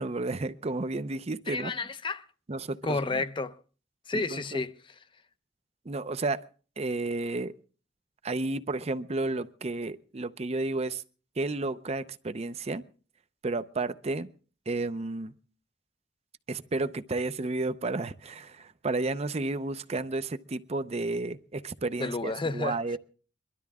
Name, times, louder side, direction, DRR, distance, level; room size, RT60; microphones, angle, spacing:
voice 1, 0.0-1.7 2.5-3.2 4.1-4.6 5.9-6.4 6.8-7.5 8.2-11.0 11.4-12.8 13.4-14.3 14.7-15.3 16.5-23.0, right 2 dB, 35° right, 0.6 m, -32 dB
voice 2, 1.5-2.2 2.8-3.6 4.1-4.7 22.0-23.0, left 3 dB, 30° left, 0.6 m, -31 dB
22.5 x 12.5 x 3.6 m
head